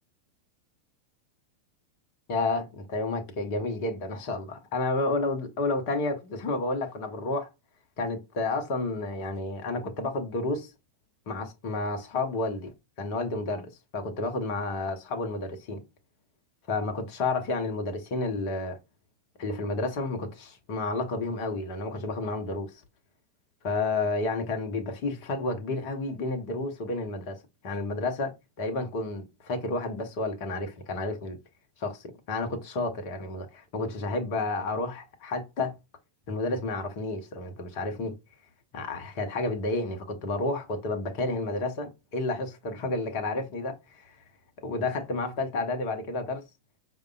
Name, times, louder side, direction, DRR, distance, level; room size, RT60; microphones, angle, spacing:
voice 1, 2.3-7.5 8.0-10.7 11.3-12.7 13.0-15.8 16.7-18.8 19.4-22.7 23.6-31.4 31.8-35.8 36.3-38.2 38.7-44.2 44.6-46.4, left 2 dB, 45° left, 0.8 m, -31 dB
4.8 x 2.2 x 2.3 m
figure-of-eight pair, 90°, 0 cm